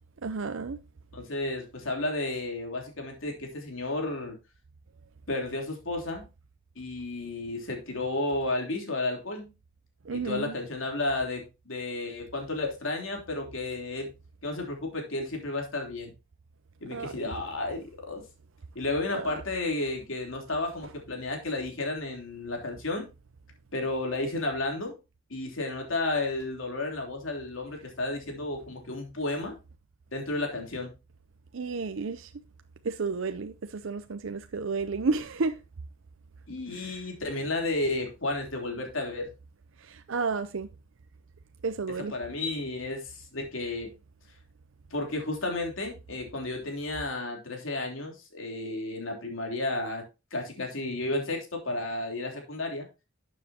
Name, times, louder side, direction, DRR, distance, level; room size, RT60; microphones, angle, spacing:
voice 1, 0.2-0.8 10.1-10.5 16.9-17.1 19.1-19.3 31.5-32.3 32.8-35.6 36.8-36.9 39.8-40.7 41.6-42.1, right 4 dB, 75° right, 0.6 m, -31 dB
voice 2, 1.1-4.4 5.3-6.3 6.8-9.5 10.1-14.1 14.4-16.1 16.8-18.2 18.7-23.1 23.7-24.9 25.3-29.6 30.1-30.9 36.5-39.3 42.0-43.9 44.9-50.0 50.3-52.9, left 2 dB, 80° left, 3.3 m, -32 dB
12.0 x 7.4 x 2.8 m
head